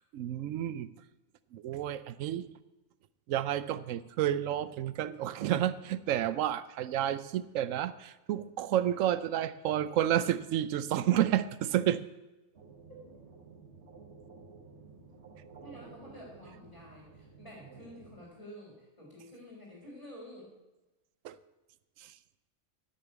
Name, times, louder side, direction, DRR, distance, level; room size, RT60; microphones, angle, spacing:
voice 1, 0.1-0.9 1.5-2.4 3.3-12.0 21.2-21.4 22.0-22.1, right 11 dB, 75° right, 15 dB, 1.0 m, -30 dB
sound 1, 12.5-18.2, right 4 dB, 55° right, 1.6 m, -53 dB
voice 2, 15.6-20.5, equal, 25° left, -8 dB, 3.5 m, -50 dB
9.7 x 6.8 x 8.2 m, 1.1 s
omnidirectional pair, 1.4 m